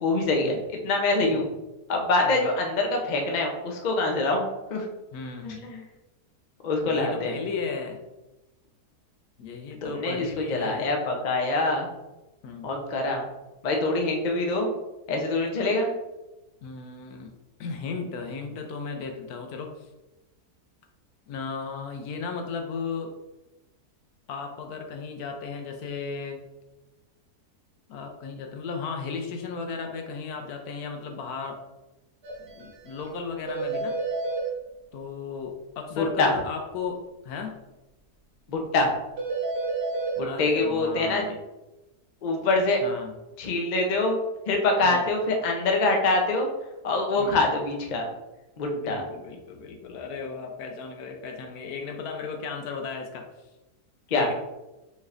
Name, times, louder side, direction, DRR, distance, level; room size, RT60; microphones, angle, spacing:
voice 1, 0.0-1.5 1.9-4.8 5.4-5.8 6.6-7.3 9.8-11.9 12.6-13.3 13.6-14.7 15.1-15.9 36.0-36.3 38.5-38.9 40.2-41.2 42.2-42.8 43.4-44.2 44.5-46.5 46.8-48.1 48.6-49.0 54.1-54.3, left 2 dB, 50° left, 1 dB, 0.5 m, -25 dB
voice 2, 5.1-5.6 6.9-8.0 9.4-10.9 12.4-12.7 16.6-17.3 17.6-19.7 21.3-23.1 24.3-26.4 27.9-31.6 32.4-34.0 34.9-37.6 40.2-41.4 42.8-43.1 44.8-45.1 47.2-47.5 48.7-53.3 54.1-54.3, left 5 dB, 75° left, 4 dB, 1.1 m, -35 dB
sound 1, 32.2-32.3 32.6-32.7 33.0-33.1 33.5-34.4 39.2-40.1, right 3 dB, 45° right, 1.1 m, -29 dB
5.4 x 3.3 x 2.5 m, 1.0 s
omnidirectional pair, 1.7 m